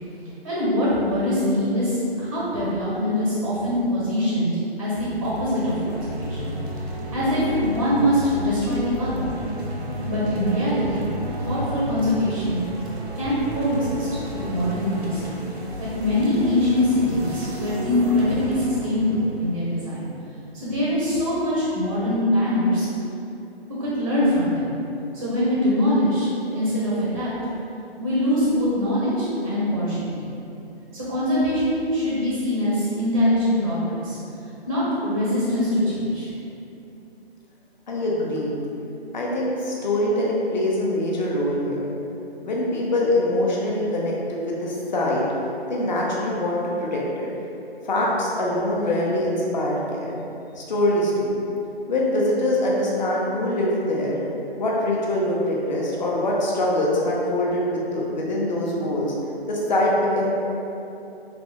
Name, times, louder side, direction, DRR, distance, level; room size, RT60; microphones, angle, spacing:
voice 1, 0.4-6.5 7.1-9.3 10.1-11.1 11.4-12.6 13.2-14.1 14.5-15.2 15.8-20.1 20.5-22.9 23.8-24.7 25.1-27.3 28.0-30.3 30.9-34.2 34.7-36.3, left 1 dB, 25° right, -8 dB, 0.4 m, -23 dB
sound 1, 4.9-20.3, equal, 90° right, 0.7 m, -32 dB
voice 2, 37.9-38.6 39.1-41.9 42.4-45.2 45.7-47.3 47.8-50.2 50.6-51.3 51.9-54.2 54.6-59.1 59.5-60.3, left 1 dB, 45° left, -4 dB, 0.6 m, -23 dB
3.3 x 2.1 x 2.9 m, 2.8 s
figure-of-eight pair, 145°, 32 cm